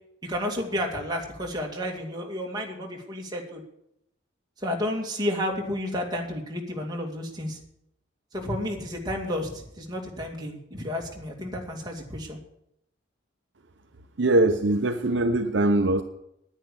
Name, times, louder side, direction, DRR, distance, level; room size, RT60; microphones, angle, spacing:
voice 1, 0.2-3.6 4.6-7.6 8.3-12.4, left 1 dB, 20° right, 0 dB, 2.3 m, -31 dB
voice 2, 14.2-16.0, right 2 dB, 65° right, 7 dB, 0.8 m, -22 dB
10.0 x 9.9 x 8.4 m, 0.77 s
head